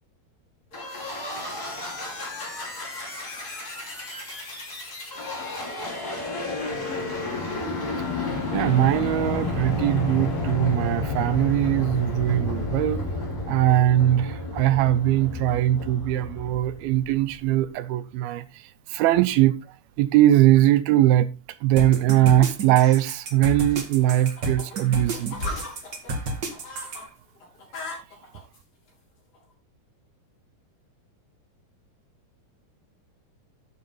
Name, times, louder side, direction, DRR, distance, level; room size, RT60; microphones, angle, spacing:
sound 1, 0.7-17.3, left 2 dB, 25° left, 4.7 m, -31 dB
voice 1, 8.5-13.0 13.5-18.6 18.9-19.5 20.0-21.3 21.6-25.4, right 13 dB, 80° right, 2.5 m, -21 dB
sound 2, 21.8-27.0, right 2 dB, 50° right, 1.2 m, -31 dB
sound 3, 23.7-27.0 27.4-28.6 29.3-29.4, left 2 dB, 40° left, 5.8 m, -37 dB
11.5 x 6.8 x 4.2 m
omnidirectional pair, 4.5 m